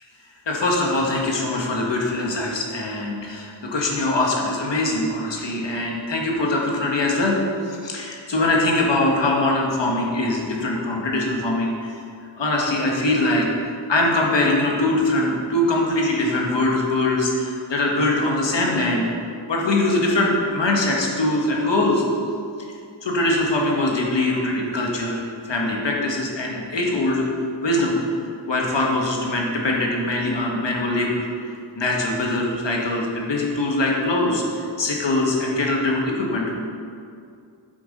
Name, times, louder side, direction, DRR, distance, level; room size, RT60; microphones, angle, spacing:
voice 1, 0.5-7.4 7.6-12.0 12.4-19.1 19.5-22.0 23.0-27.3 27.6-27.9 28.5-31.2 31.8-36.5, left 2 dB, 60° left, -1 dB, 1.8 m, -22 dB
8.4 x 7.0 x 5.3 m, 2.4 s
wide cardioid pair, 105°, 48 cm